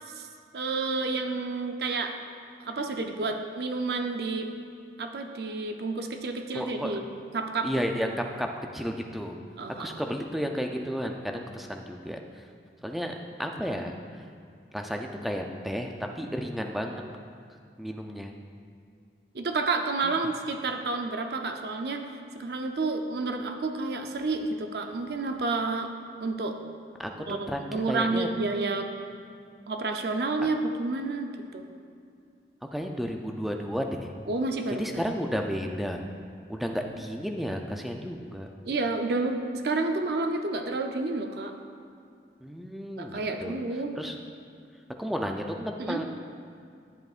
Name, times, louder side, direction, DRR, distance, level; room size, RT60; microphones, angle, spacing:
voice 1, 0.5-2.1 2.6-4.5 5.0-7.0 7.3-7.7 7.9-8.1 9.6-10.0 19.3-22.0 22.3-25.9 26.2-26.6 27.3-28.9 29.7-31.6 34.3-34.8 38.6-41.5 43.0-43.9 45.8-46.0, right 3 dB, 65° right, 5 dB, 0.5 m, -30 dB
voice 2, 6.5-6.9 7.6-8.1 8.4-8.5 8.7-9.4 9.8-12.2 12.8-13.1 13.4-13.9 14.7-17.0 17.8-18.3 27.0-28.3 32.7-34.1 34.8-36.0 36.5-38.5 42.4-43.5 44.0-44.2 45.0-46.0, equal, ahead, 2 dB, 0.4 m, -32 dB
10.5 x 7.8 x 2.4 m, 2.4 s
head